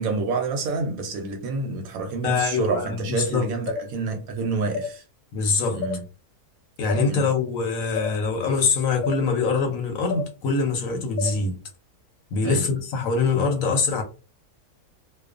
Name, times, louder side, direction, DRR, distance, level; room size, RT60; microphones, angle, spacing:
voice 1, 0.0-5.0 5.7-6.0 7.0-7.3 12.4-12.8, right 4 dB, 70° right, 0.9 m, -28 dB
voice 2, 2.2-3.5 5.3-5.8 6.8-11.6 12.3-14.0, left 4 dB, 65° left, 0.9 m, -24 dB
sound 1, 3.7-3.8 4.7-4.9 5.8-6.0 6.9-7.0 8.0-8.1 9.0-9.2 10.1-10.3 11.2-11.3, left 5 dB, 85° left, 0.5 m, -29 dB
2.4 x 2.3 x 2.4 m
omnidirectional pair, 1.7 m